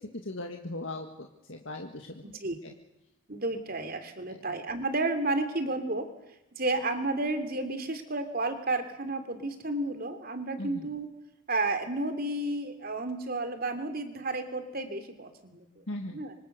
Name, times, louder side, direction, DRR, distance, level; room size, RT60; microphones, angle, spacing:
voice 1, 0.0-2.2 2.6-2.7 4.3-4.4 10.6-10.9 15.9-16.2, left 1 dB, 60° left, 3 dB, 2.0 m, -39 dB
voice 2, 2.2-2.6 3.3-6.1 6.6-11.1 11.5-15.8 16.1-16.4, right 2 dB, 45° right, 8 dB, 3.0 m, -32 dB
26.0 x 25.5 x 6.9 m, 0.91 s
head